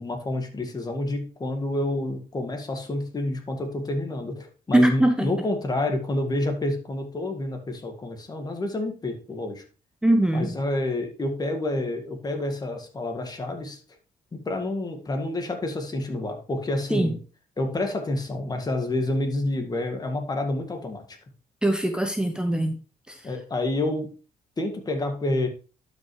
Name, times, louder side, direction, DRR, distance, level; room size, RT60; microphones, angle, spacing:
voice 1, 0.0-9.6 10.3-13.8 14.3-17.2 17.6-21.2 23.2-24.1 24.6-25.5, left 2 dB, 25° left, 5 dB, 1.8 m, -28 dB
voice 2, 4.7-5.3 10.0-10.5 16.9-17.1 21.6-22.8 23.1-23.2, right 1 dB, 5° right, 5 dB, 0.8 m, -21 dB
12.0 x 5.7 x 3.2 m, 0.35 s
cardioid pair, 105°, 15 cm